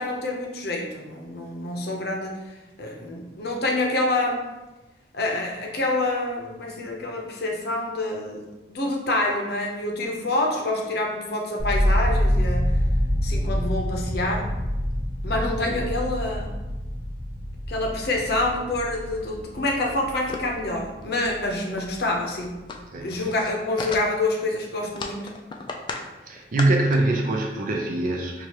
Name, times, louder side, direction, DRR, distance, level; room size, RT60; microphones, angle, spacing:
voice 1, 0.0-2.3 2.8-4.5 5.1-8.4 8.7-12.8 13.2-14.5 15.2-16.5 17.7-22.6 23.0-25.3, left 2 dB, 65° left, 0 dB, 0.7 m, -27 dB
sound 1, 11.6-21.6 21.9-22.6, equal, 75° right, 1.1 m, -26 dB
sound 2, 20.3-20.6 21.0-21.1 21.4-21.5 21.8-21.9 22.1-24.4 24.8-26.1 26.4-27.0, left 3 dB, 25° left, 0.3 m, -35 dB
voice 2, 26.3-28.5, right 2 dB, 50° right, 1 dB, 0.4 m, -24 dB
4.7 x 2.4 x 2.9 m, 1.1 s
head